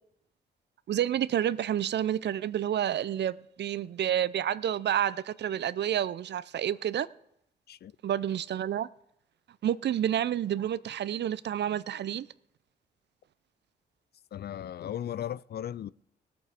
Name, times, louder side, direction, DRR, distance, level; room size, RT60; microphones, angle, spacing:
voice 1, 0.9-7.1 8.0-8.9 9.6-12.3, right 10 dB, 60° right, 0.5 m, -29 dB
voice 2, 14.3-15.9, left 10 dB, 55° left, 0.4 m, -36 dB
19.0 x 8.5 x 3.6 m
supercardioid pair, 45°, 20 cm